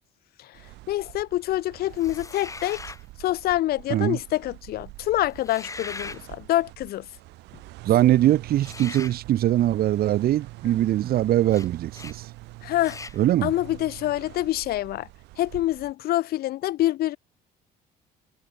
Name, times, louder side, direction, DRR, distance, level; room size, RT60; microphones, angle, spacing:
voice 1, 0.4-2.8 3.2-7.1 10.6-10.8 12.6-13.0 13.4-15.1 15.4-17.2, left 15 dB, 65° left, 0.7 m, -26 dB
sound 1, 0.5-15.9, right 20 dB, 90° right, 5.0 m, -44 dB
sound 2, 2.0-3.0 5.3-6.2 8.6-9.2 11.5-11.7 11.9-12.2 12.8-13.2, left 3 dB, 20° left, 1.9 m, -39 dB
voice 2, 7.8-12.2 13.2-13.5, right 13 dB, 65° right, 1.4 m, -22 dB
cardioid pair, 110°, 17 cm